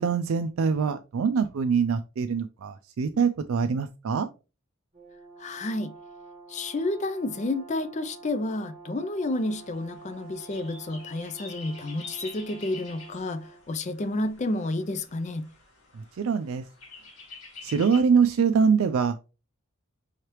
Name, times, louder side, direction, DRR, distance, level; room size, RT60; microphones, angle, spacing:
voice 1, 0.0-4.3 15.9-16.7 17.6-19.3, right 6 dB, 70° right, 0.4 m, -24 dB
Brass instrument, 4.9-13.7, right 4 dB, 30° right, 1.4 m, -48 dB
voice 2, 5.4-6.0 6.5-15.5, left 2 dB, 30° left, 0.4 m, -30 dB
sound 1, 9.3-18.0, left 4 dB, 80° left, 1.7 m, -47 dB
5.6 x 3.2 x 2.9 m
head